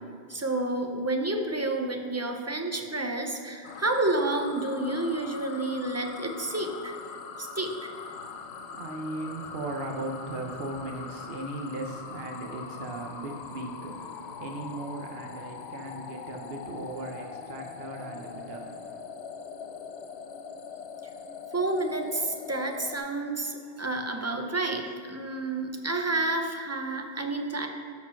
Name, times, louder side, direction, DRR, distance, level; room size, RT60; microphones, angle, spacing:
voice 1, 0.3-7.0 7.4-7.9 21.5-27.7, right 2 dB, 15° right, 0.7 m, -30 dB
sound 1, 3.6-23.0, left 6 dB, 85° left, 0.9 m, -42 dB
voice 2, 8.1-19.0, right 2 dB, 70° right, 1.1 m, -38 dB
13.0 x 4.7 x 5.8 m
omnidirectional pair, 1.1 m